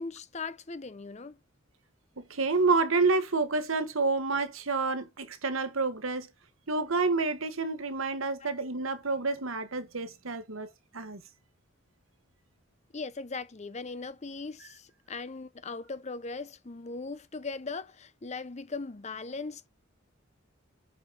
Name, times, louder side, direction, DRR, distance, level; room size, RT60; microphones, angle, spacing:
voice 1, 0.0-1.4 12.9-19.7, left 4 dB, 35° left, 0.7 m, -39 dB
voice 2, 2.2-6.3 6.7-11.2, right 3 dB, 90° right, 1.3 m, -29 dB
7.5 x 4.9 x 4.1 m
head